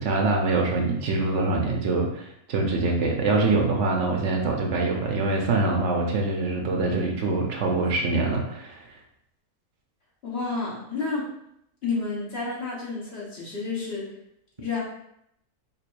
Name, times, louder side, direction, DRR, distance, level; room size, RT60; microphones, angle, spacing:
voice 1, 0.0-8.8, right 3 dB, 65° right, 1 dB, 0.8 m, -24 dB
voice 2, 10.2-11.3 11.8-14.1 14.6-14.8, left 4 dB, 45° left, -5 dB, 1.4 m, -30 dB
4.5 x 2.9 x 2.5 m, 0.76 s
omnidirectional pair, 1.6 m